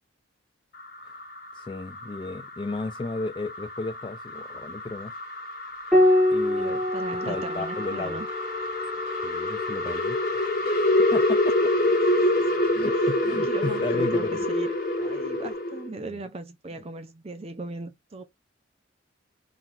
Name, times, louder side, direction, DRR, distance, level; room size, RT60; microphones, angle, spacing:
sound 1, 0.7-15.9, left 1 dB, 50° left, 1.5 m, -27 dB
voice 1, 1.5-5.1 6.3-6.8 7.2-8.2 9.2-10.2 11.1-11.5 12.7-14.4 16.0-16.1, left 3 dB, 25° left, 0.3 m, -34 dB
Piano, 5.9-10.8 12.4-13.2, left 1 dB, ahead, 1.2 m, -26 dB
voice 2, 6.6-8.3 12.4-12.5 13.0-14.7 15.0-18.2, right 2 dB, 30° right, 0.5 m, -38 dB
Wind instrument woodwind instrument, 6.9-10.7, left 4 dB, 15° right, 2.4 m, -38 dB
4.2 x 3.9 x 2.4 m
head